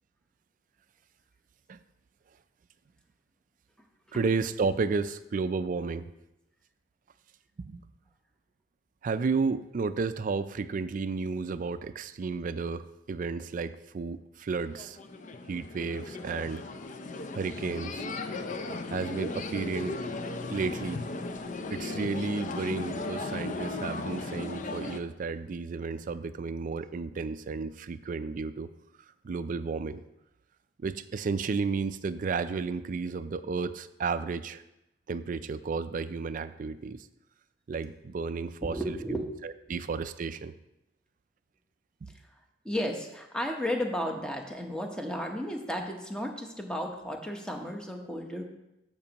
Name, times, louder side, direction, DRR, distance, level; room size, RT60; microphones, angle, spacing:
voice 1, 4.1-6.1 7.6-7.8 9.0-15.0 15.5-16.6 17.3-18.0 18.9-20.0 20.5-21.0 21.7-28.7 29.2-30.0 30.8-34.6 35.1-37.1 37.7-39.0 39.4-40.5 42.0-42.1, right 4 dB, 45° right, 13 dB, 0.4 m, -32 dB
sound 1, 14.7-25.0, left 3 dB, 45° left, 0.5 m, -36 dB
voice 2, 38.7-39.3 39.7-39.8 42.6-48.4, equal, 5° left, 2 dB, 0.9 m, -34 dB
14.0 x 5.2 x 2.9 m, 0.91 s
head